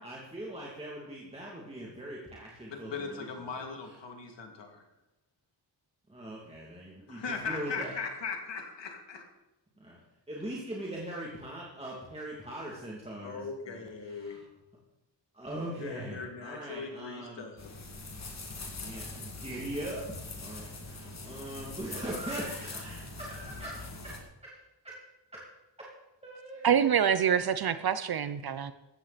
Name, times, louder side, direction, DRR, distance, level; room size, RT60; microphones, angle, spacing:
voice 1, 0.0-3.2 6.1-7.9 9.8-10.0 10.3-14.5 15.3-17.4 18.8-20.0 20.4-24.6 24.8-25.0 25.3-25.4 25.8-25.9 26.2-26.9, right 1 dB, 15° right, -4 dB, 2.5 m, -41 dB
voice 2, 2.7-4.8 7.1-9.2 13.2-14.4 15.8-17.7, left 5 dB, 85° left, 3 dB, 2.6 m, -39 dB
sound 1, 17.6-24.2, left 3 dB, 40° left, 2.3 m, -42 dB
voice 3, 26.6-28.7, right 8 dB, 60° right, 12 dB, 0.7 m, -26 dB
15.5 x 13.0 x 4.2 m, 0.99 s
wide cardioid pair, 150°, 42 cm